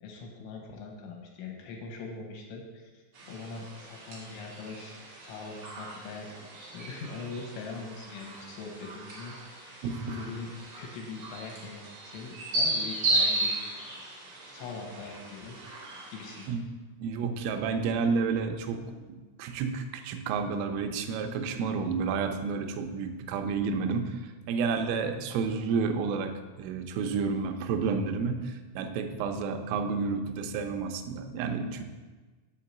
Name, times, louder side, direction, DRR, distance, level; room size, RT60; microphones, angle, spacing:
voice 1, 0.0-5.0 5.2-13.9 14.2-15.6 16.1-16.6, left 4 dB, 75° left, 0 dB, 3.5 m, -42 dB
sound 1, 3.1-16.5, right 2 dB, 50° right, 2.3 m, -35 dB
voice 2, 9.8-10.2 16.5-16.6 17.0-18.8 19.1-31.8, right 5 dB, 90° right, 6 dB, 3.3 m, -30 dB
7.6 x 4.7 x 7.2 m, 1.3 s
omnidirectional pair, 5.6 m